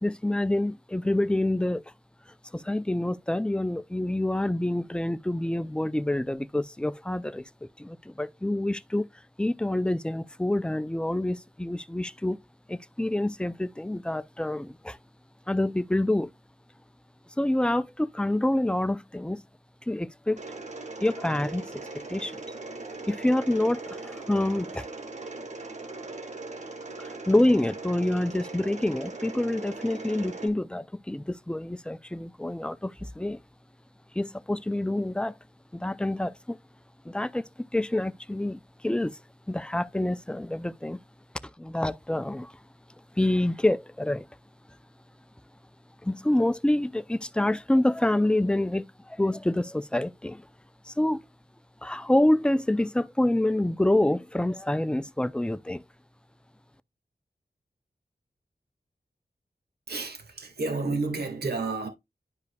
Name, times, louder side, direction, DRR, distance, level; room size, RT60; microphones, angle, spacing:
voice 1, 0.0-1.8 2.5-9.1 9.4-12.4 12.7-15.0 15.5-16.3 17.4-19.4 19.9-20.4 21.0-21.7 22.1-22.4 23.1-24.9 27.0-33.4 34.1-35.3 35.7-36.6 37.1-37.4 37.7-39.2 39.5-41.0 41.6-42.6 43.2-44.3 46.0-50.4 50.9-51.2 51.8-55.8, left 1 dB, 5° left, 0.5 m, -27 dB
Mechanisms, 20.4-30.5, right 3 dB, 45° right, 1.5 m, -39 dB
voice 2, 59.9-61.9, right 3 dB, 75° right, 1.9 m, -30 dB
10.5 x 5.1 x 2.3 m
wide cardioid pair, 70°, 17 cm